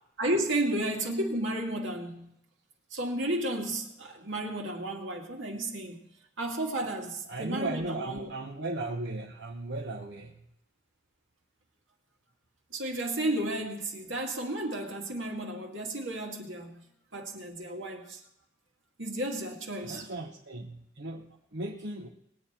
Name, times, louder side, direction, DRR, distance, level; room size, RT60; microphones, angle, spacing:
voice 1, 0.2-2.3 2.9-6.1 6.4-8.3 12.7-16.9 17.1-18.2 19.0-20.1, right 1 dB, 75° right, 2.1 m, -33 dB
voice 2, 7.3-10.5 19.8-22.1, right 2 dB, 55° right, 1.0 m, -37 dB
20.0 x 8.6 x 4.4 m
head